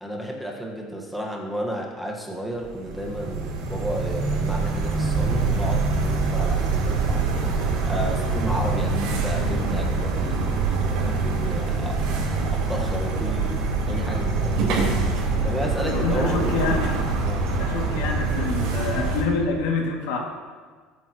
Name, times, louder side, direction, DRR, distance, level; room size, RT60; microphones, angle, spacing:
voice 1, 0.0-7.2 7.5-12.1 12.5-13.6 13.9-14.8 15.4-16.4 17.2-17.5, equal, ahead, -1 dB, 1.4 m, -32 dB
sound 1, 2.6-19.2, right 3 dB, 85° right, 2.9 m, -25 dB
sound 2, 11.6-17.9, right 2 dB, 60° right, 4.2 m, -33 dB
voice 2, 15.8-17.0 17.6-20.2, left 4 dB, 85° left, 0 dB, 2.3 m, -26 dB
20.5 x 9.2 x 3.0 m, 1.5 s
cardioid pair, 165°, 0 cm